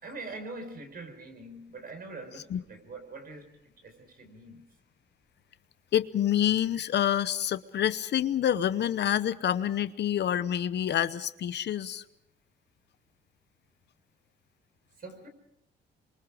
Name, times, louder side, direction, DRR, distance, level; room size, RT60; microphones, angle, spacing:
voice 1, 0.0-3.5 3.8-4.6 15.0-15.3, right 3 dB, 50° right, 7 dB, 4.8 m, -43 dB
voice 2, 5.9-12.0, left 10 dB, 60° left, 14 dB, 0.8 m, -27 dB
27.5 x 23.5 x 4.9 m, 0.80 s
cardioid pair, 90°, 20 cm